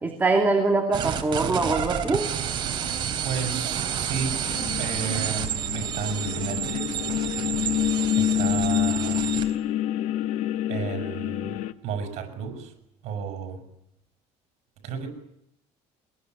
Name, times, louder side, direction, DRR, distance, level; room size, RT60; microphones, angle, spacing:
voice 1, 0.0-2.3, right 3 dB, 15° right, 2 dB, 2.6 m, -23 dB
sound 1, 0.9-9.5, right 9 dB, 40° right, 3.6 m, -30 dB
voice 2, 3.2-4.4 4.8-5.5 5.7-7.0 8.1-9.3 10.7-11.6 11.8-12.7 13.0-13.6 14.8-15.1, right 7 dB, 70° right, 6 dB, 6.5 m, -32 dB
sound 2, 4.5-11.7, left 12 dB, 75° left, 1.2 m, -27 dB
23.0 x 21.0 x 9.4 m, 0.80 s
cardioid pair, 150°, 12 cm